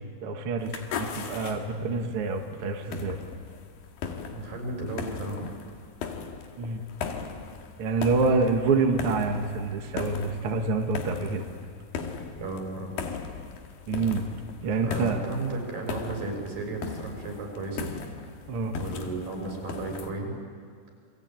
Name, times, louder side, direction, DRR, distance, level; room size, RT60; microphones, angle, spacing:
voice 1, 0.0-3.2 6.6-6.8 7.8-11.4 13.9-14.3 14.6-15.2 18.5-18.7, right 4 dB, 50° right, 3 dB, 2.1 m, -27 dB
sound 1, 0.6-20.1, left 5 dB, 85° left, 3.6 m, -38 dB
voice 2, 4.3-5.5 12.4-13.0 14.8-17.9 18.8-20.4, right 2 dB, 80° right, 0 dB, 7.9 m, -34 dB
28.5 x 23.0 x 9.1 m, 2.2 s
omnidirectional pair, 4.0 m